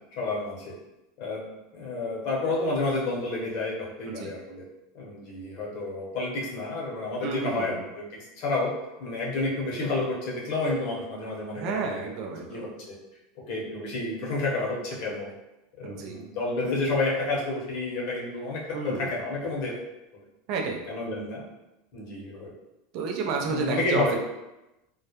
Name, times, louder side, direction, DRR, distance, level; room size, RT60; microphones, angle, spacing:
voice 1, 0.2-0.7 1.2-1.4 1.7-4.6 4.9-12.0 12.5-13.0 13.5-15.3 15.8-19.8 20.9-21.4 21.9-22.5 23.4-24.2, left 2 dB, 65° left, -3 dB, 0.8 m, -30 dB
voice 2, 7.2-7.8 11.5-12.7 15.8-16.2 18.7-19.1 20.5-20.8 22.9-24.2, right 5 dB, 55° right, 2 dB, 0.4 m, -31 dB
2.2 x 2.0 x 2.8 m, 0.96 s
supercardioid pair, 115°, 0 cm